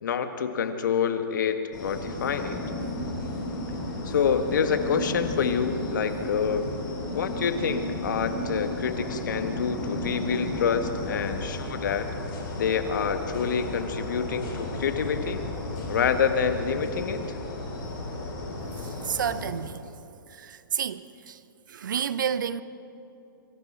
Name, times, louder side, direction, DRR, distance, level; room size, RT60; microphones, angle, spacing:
voice 1, 0.0-2.6 4.1-6.6 7.1-12.1 12.5-15.4 15.9-17.2, left 7 dB, 60° left, 1.7 m, -27 dB
sound 1, 1.7-19.5, left 1 dB, 30° left, 6.5 m, -34 dB
voice 2, 19.0-19.8 20.3-21.4 21.7-22.6, right 8 dB, 60° right, 0.8 m, -30 dB
27.0 x 24.5 x 4.5 m
figure-of-eight pair, 120°, 12 cm